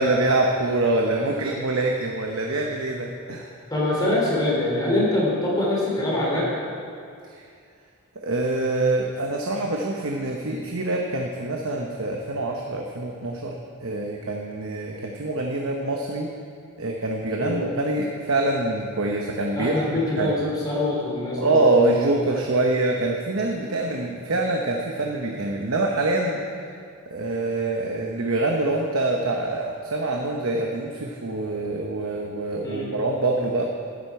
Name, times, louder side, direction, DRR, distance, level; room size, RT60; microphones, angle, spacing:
voice 1, 0.0-3.5 7.2-7.5 8.1-16.3 16.8-19.8 20.2-20.3 21.4-26.4 27.1-33.6, right 2 dB, 65° right, 1 dB, 0.9 m, -25 dB
voice 2, 3.7-6.5 17.4-17.6 19.5-21.6 32.6-32.9, left 1 dB, 20° left, -5 dB, 2.9 m, -24 dB
13.0 x 11.0 x 4.8 m, 2.3 s
head